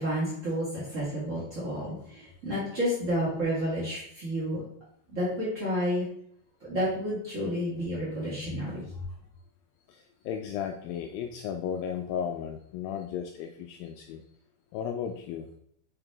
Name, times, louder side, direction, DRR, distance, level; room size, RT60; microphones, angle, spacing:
voice 1, 0.0-4.6 5.1-6.1 6.7-8.9, equal, 60° right, -8 dB, 0.8 m, -30 dB
voice 2, 9.9-14.2 14.7-15.5, left 8 dB, 85° left, 4 dB, 2.0 m, -35 dB
5.7 x 5.0 x 3.4 m, 0.69 s
omnidirectional pair, 4.6 m